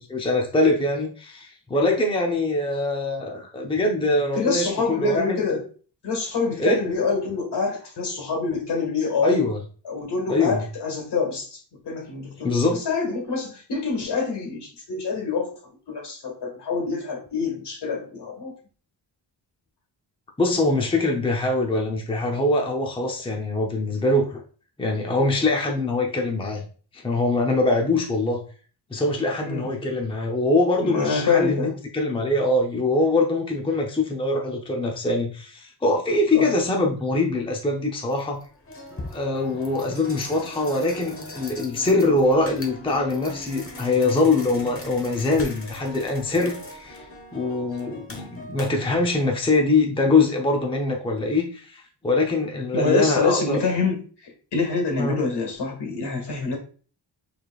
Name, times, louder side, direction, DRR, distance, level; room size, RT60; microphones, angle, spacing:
voice 1, 0.0-5.4 6.6-6.8 9.2-9.6 10.3-10.6 12.4-12.9 20.4-24.4 24.8-26.6 26.9-28.4 28.9-38.4 39.1-53.6 55.0-55.2, left 2 dB, 10° left, 1 dB, 0.6 m, -23 dB
voice 2, 4.4-5.6 6.0-9.4 9.8-15.5 15.9-18.5 29.4-29.7 30.8-31.7 36.3-36.5 52.7-56.6, left 4 dB, 70° left, 3 dB, 1.7 m, -26 dB
sound 1, 37.3-37.4 38.1-49.0, left 1 dB, 30° left, 1.0 m, -40 dB
6.4 x 3.4 x 2.3 m, 0.40 s
wide cardioid pair, 140°, 43 cm